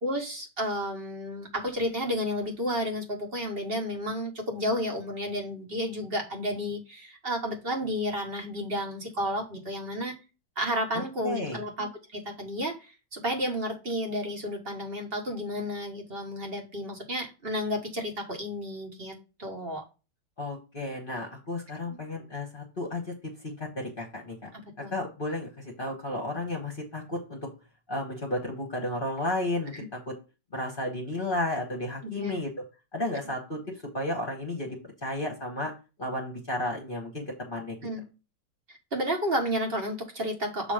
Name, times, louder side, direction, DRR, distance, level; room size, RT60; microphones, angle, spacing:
voice 1, 0.0-10.1 10.6-19.8 24.5-24.9 29.7-29.8 32.2-32.4 37.8-38.0 38.7-40.7, equal, 35° right, 1.4 m, -32 dB
voice 2, 10.9-11.6 20.4-23.1 23.4-24.5 24.9-27.4 27.9-29.9 30.5-32.5 32.9-33.6 33.9-34.8 35.0-35.7 36.0-37.8, left 1 dB, 35° left, 1.2 m, -33 dB
7.3 x 3.0 x 5.0 m
omnidirectional pair, 1.9 m